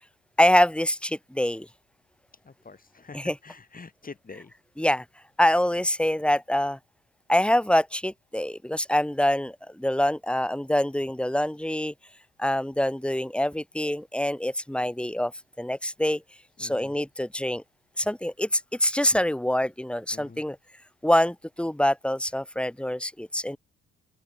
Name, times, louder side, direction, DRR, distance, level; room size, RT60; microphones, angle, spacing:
voice 1, 0.4-1.7 3.1-3.3 4.8-5.0 5.4-6.8 7.3-11.9 12.4-15.3 15.6-16.2 16.6-17.6 18.0-20.6 21.0-23.6, left 1 dB, 5° left, 2.9 m, -25 dB
voice 2, 2.3-4.5 16.6-17.0 20.1-20.4, left 4 dB, 30° left, 5.5 m, -46 dB
open air
cardioid pair, 90°, 30 cm